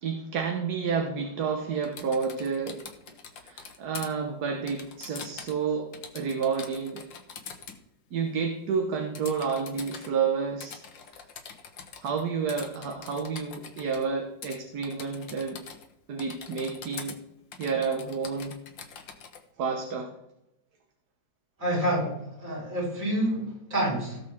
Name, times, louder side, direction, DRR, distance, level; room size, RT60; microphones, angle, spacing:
voice 1, 0.0-2.8 3.4-7.0 8.1-10.8 12.0-15.6 16.1-17.2 17.6-18.6 19.6-20.1, right 5 dB, 60° right, 3 dB, 1.4 m, -30 dB
Typing, 1.8-4.1 4.7-5.6 5.9-7.8 9.1-10.1 10.6-12.2 12.5-14.1 14.4-14.6 14.8-15.9 16.2-17.2 17.5-19.4, left 6 dB, 75° left, 1.9 m, -44 dB
voice 2, 21.6-24.2, right 1 dB, 45° right, -6 dB, 5.4 m, -28 dB
17.0 x 6.6 x 3.6 m, 0.86 s
omnidirectional pair, 2.1 m